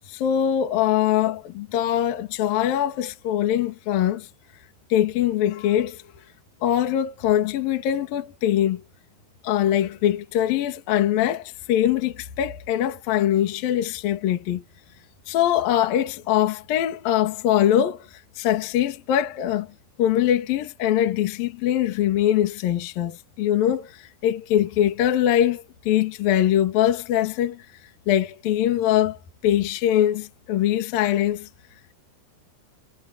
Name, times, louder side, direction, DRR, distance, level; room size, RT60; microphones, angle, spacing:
voice 1, 0.1-4.3 4.9-6.0 6.6-8.8 9.4-14.6 15.3-19.7 20.0-27.6 28.1-31.5, left 11 dB, 55° left, 3.2 m, -22 dB
omnidirectional pair, 5.9 m